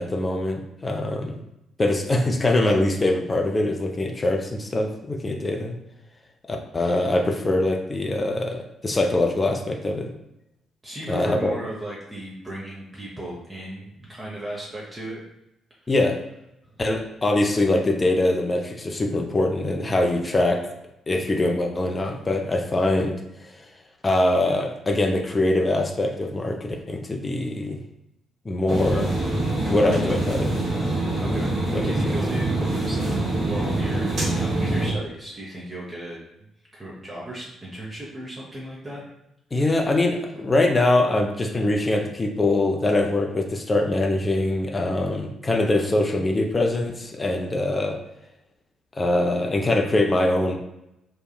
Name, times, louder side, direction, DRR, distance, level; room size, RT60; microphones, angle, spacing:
voice 1, 0.0-1.4 1.8-5.8 6.5-10.1 11.1-11.6 15.9-16.2 16.8-20.6 21.1-23.2 24.0-27.8 28.5-29.1 29.7-30.5 31.7-32.2 39.5-48.0 49.0-50.6, left 2 dB, 25° left, 2 dB, 0.4 m, -23 dB
voice 2, 10.8-15.2 15.8-15.9 31.2-39.0 39.5-40.0, right 1 dB, 20° right, -5 dB, 0.6 m, -36 dB
sound 1, 28.7-34.9, right 2 dB, 50° right, 0.9 m, -25 dB
2.8 x 2.2 x 2.2 m, 0.86 s
figure-of-eight pair, 40°, 0 cm